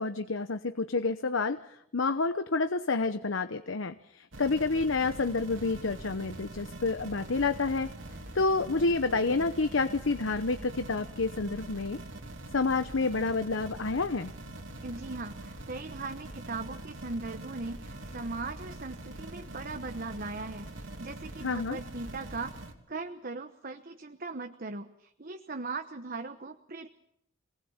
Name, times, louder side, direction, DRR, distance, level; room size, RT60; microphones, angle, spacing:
voice 1, 0.0-7.9 8.3-12.0 12.5-14.3 21.4-21.8, left 3 dB, 80° left, 9 dB, 0.9 m, -29 dB
sound 1, 4.3-22.7, right 1 dB, 85° right, 3.1 m, -44 dB
voice 2, 14.8-22.5 22.9-26.9, right 3 dB, 50° right, 6 dB, 1.1 m, -39 dB
27.5 x 19.5 x 7.3 m, 0.75 s
head